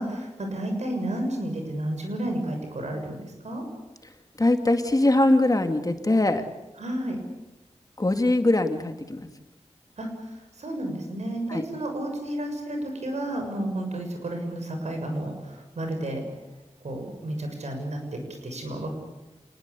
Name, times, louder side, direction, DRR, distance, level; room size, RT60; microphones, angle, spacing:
voice 1, 0.0-3.6 6.8-7.2 10.0-10.1 10.6-16.2 16.8-18.9, right 1 dB, 75° right, 4 dB, 6.9 m, -31 dB
voice 2, 4.4-6.4 8.0-9.2 11.5-11.6, left 2 dB, 30° left, 7 dB, 2.4 m, -22 dB
27.5 x 19.5 x 8.5 m, 1.1 s
cardioid pair, 55°, 12 cm